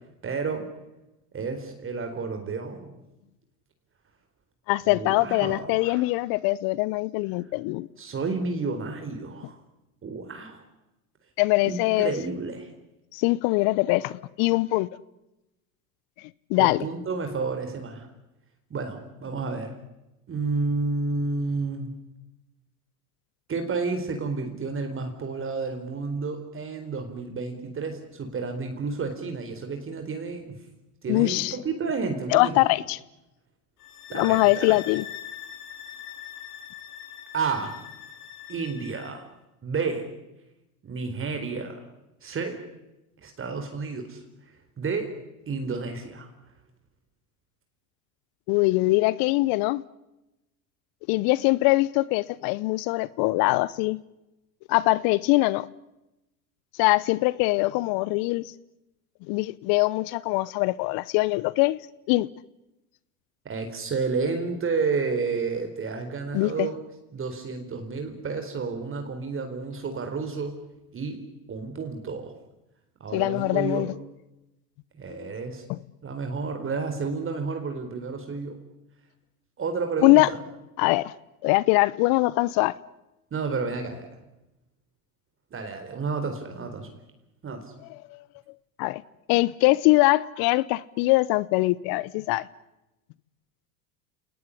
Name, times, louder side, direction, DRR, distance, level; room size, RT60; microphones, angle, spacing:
voice 1, 0.2-0.6 1.3-2.9 4.9-6.1 8.0-9.6 10.0-10.6 11.6-12.7 16.6-18.1 18.7-19.7 20.3-21.9 23.5-30.6 31.0-32.6 34.1-34.8 37.3-37.7 38.5-39.3 39.6-40.1 40.8-41.8 42.2-42.6 43.2-45.1 45.5-46.3 63.4-66.8 67.1-70.6 70.9-71.2 71.5-72.3 73.0-73.9 74.9-75.6 76.0-78.6 79.6-80.4 83.3-84.1 85.5-86.9 87.4-87.6, right 4 dB, 30° right, 4.4 m, -31 dB
voice 2, 4.7-7.9 11.4-12.1 13.1-14.9 16.5-16.8 31.1-31.6 32.3-33.0 34.1-35.0 48.5-49.8 51.1-54.0 54.7-55.7 56.8-58.5 59.3-61.8 62.1-62.3 66.3-66.7 73.1-73.9 75.2-75.3 75.7-75.8 80.0-80.3 80.8-81.1 81.4-82.7 87.9-88.2 88.8-89.0 89.3-92.5, left 21 dB, 50° left, 0.9 m, -22 dB
sound 1, 33.8-39.2, left 10 dB, 80° left, 5.2 m, -41 dB
29.0 x 19.0 x 10.0 m
hypercardioid pair, 90°, 44 cm